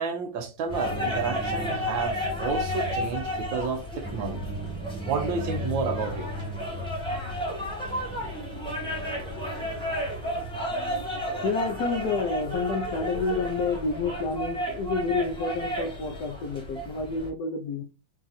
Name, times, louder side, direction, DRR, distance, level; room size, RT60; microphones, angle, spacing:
voice 1, 0.0-4.5 5.0-6.3, right 5 dB, 75° right, 1.4 m, -31 dB
sound 1, 0.7-17.3, equal, 5° left, 1.1 m, -32 dB
voice 2, 10.7-17.8, left 4 dB, 65° left, 1.1 m, -29 dB
4.4 x 2.4 x 3.9 m
omnidirectional pair, 2.2 m